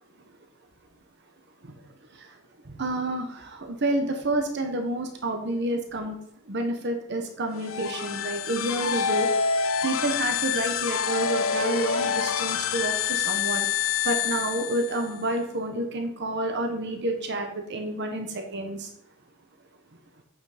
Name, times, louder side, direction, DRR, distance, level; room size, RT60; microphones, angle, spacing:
voice 1, 2.8-6.1 6.5-9.3 9.8-13.7 14.0-18.9, right 1 dB, 55° right, 4 dB, 1.1 m, -29 dB
sound 1, 7.5-15.2, left 7 dB, 70° left, 0.7 m, -27 dB
8.3 x 5.9 x 5.0 m, 0.71 s
head